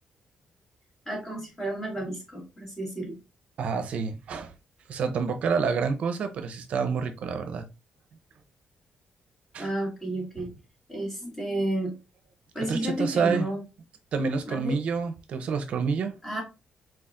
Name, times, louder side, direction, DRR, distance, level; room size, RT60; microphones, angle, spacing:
voice 1, 1.1-3.2 9.6-10.5 10.9-11.9 12.5-13.6 14.5-14.8 16.2-16.4, right 1 dB, 10° left, 2.2 m, -31 dB
voice 2, 3.6-4.5 4.9-7.7 9.5-9.7 10.4-10.5 12.6-13.5 14.1-16.1, right 5 dB, 60° right, 0.7 m, -28 dB
4.5 x 3.9 x 2.5 m
cardioid pair, 155°, 2 cm